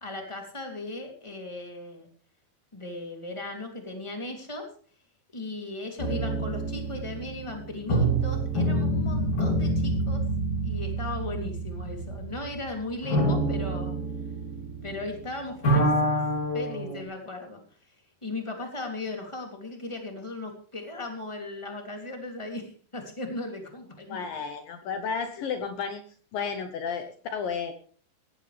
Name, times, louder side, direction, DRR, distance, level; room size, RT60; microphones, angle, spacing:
voice 1, 0.0-2.1 2.7-4.7 5.3-10.2 10.6-13.9 14.8-16.1 16.5-17.6 17.9-18.0 18.2-24.4, left 2 dB, 10° left, 3 dB, 1.8 m, -37 dB
sound 1, 6.0-15.2 15.5-17.0, right 1 dB, 45° left, 4.1 m, -27 dB
voice 2, 24.1-26.0 26.3-27.7, left 6 dB, 70° left, 7 dB, 2.2 m, -32 dB
18.0 x 15.0 x 3.4 m, 0.43 s
omnidirectional pair, 5.3 m